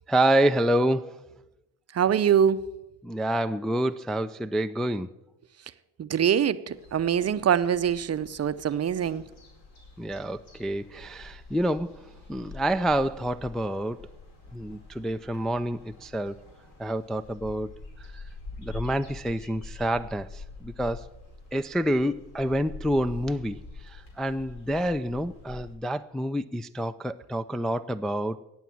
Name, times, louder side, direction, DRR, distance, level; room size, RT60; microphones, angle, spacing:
voice 1, 0.1-1.2 3.0-5.1 10.0-12.0 12.3-14.1 14.5-16.4 16.8-17.7 18.0-18.2 18.6-21.1 21.5-28.4, right 1 dB, ahead, 8 dB, 0.4 m, -28 dB
voice 2, 1.9-2.6 6.0-9.2, right 8 dB, 35° right, 14 dB, 0.7 m, -24 dB
sound 1, 6.7-25.8, left 3 dB, 70° left, 4.7 m, -46 dB
17.0 x 7.3 x 7.5 m, 0.94 s
hypercardioid pair, 60°, 42 cm